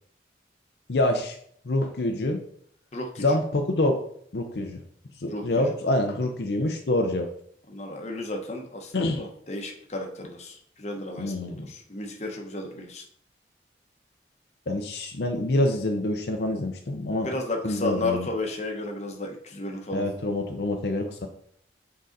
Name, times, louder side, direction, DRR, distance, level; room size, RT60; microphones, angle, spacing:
voice 1, 0.9-1.4 1.7-2.4 3.2-4.0 4.3-4.8 5.2-7.3 8.9-9.2 11.2-11.7 14.7-17.3 17.6-18.3 19.9-21.3, left 1 dB, 70° left, 4 dB, 0.6 m, -26 dB
voice 2, 2.9-3.3 5.3-5.7 7.7-13.0 17.1-20.0, left 2 dB, 40° left, 2 dB, 0.9 m, -33 dB
6.4 x 3.9 x 3.9 m, 0.64 s
head